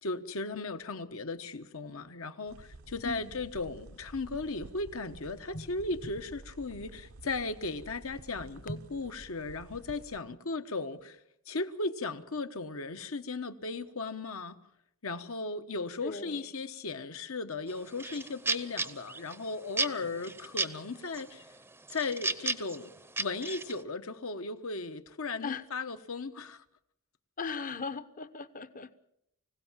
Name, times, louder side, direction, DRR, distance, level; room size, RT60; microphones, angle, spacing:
voice 1, 0.0-11.2 11.5-14.6 15.0-21.4 21.9-22.9 23.2-26.6, left 3 dB, 65° left, 1.2 m, -36 dB
sound 1, 2.5-10.2, right 2 dB, 75° right, 0.9 m, -51 dB
voice 2, 3.0-3.4 5.5-5.7 8.7-8.8 16.0-16.7 25.4-25.7 27.4-28.9, left 4 dB, 35° left, 0.9 m, -38 dB
sound 2, 17.7-19.4 19.8-20.8 21.1-21.6 21.9-23.8, right 3 dB, 10° right, 0.7 m, -33 dB
25.0 x 16.5 x 7.4 m
head